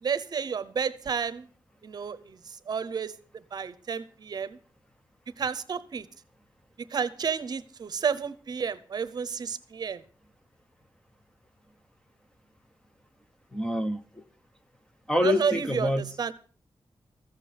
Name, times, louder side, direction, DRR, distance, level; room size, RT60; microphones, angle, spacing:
voice 1, 0.0-1.5 1.8-2.4 2.7-4.6 5.4-6.1 6.9-10.0 15.2-16.3, right 6 dB, 55° right, 0.8 m, -31 dB
voice 2, 13.5-14.2 15.1-16.1, left 1 dB, 10° left, 0.8 m, -27 dB
14.5 x 7.5 x 8.3 m
wide cardioid pair, 180°, 9 cm